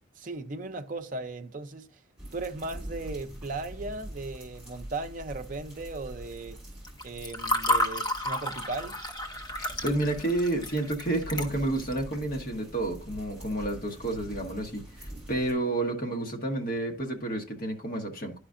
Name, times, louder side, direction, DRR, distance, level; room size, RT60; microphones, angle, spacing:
voice 1, 0.2-1.9 2.3-6.6 7.0-9.0, right 2 dB, 40° right, 0.5 m, -37 dB
sound 1, 2.2-15.5, right 1 dB, 5° right, 3.3 m, -44 dB
Water / Fill (with liquid), 6.9-12.0, left 1 dB, 20° left, 0.7 m, -31 dB
voice 2, 9.6-18.4, right 2 dB, 45° left, 1.3 m, -30 dB
11.0 x 5.0 x 2.5 m
head